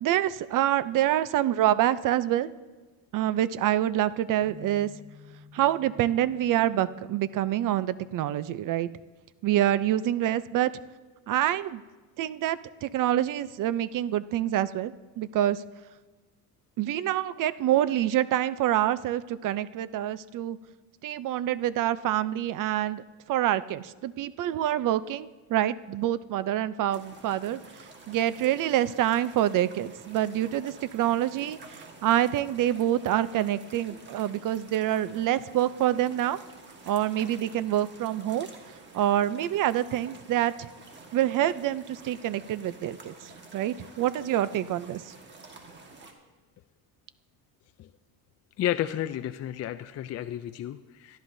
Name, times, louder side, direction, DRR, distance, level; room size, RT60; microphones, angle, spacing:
voice 1, 0.0-2.5 3.1-4.9 5.5-8.9 9.4-10.7 11.3-11.8 12.2-15.6 16.8-20.6 21.0-27.6 28.1-36.4 36.9-38.5 38.9-40.7 41.1-45.1, right 12 dB, 50° right, 15 dB, 0.6 m, -26 dB
sound 1, 4.4-8.4, left 5 dB, 5° left, 3.4 m, -53 dB
sound 2, 26.9-46.1, right 3 dB, 25° right, 1.6 m, -50 dB
voice 2, 48.6-51.2, left 12 dB, 40° left, 10 dB, 0.4 m, -32 dB
23.5 x 13.0 x 2.7 m, 1.3 s
cardioid pair, 145°, 43 cm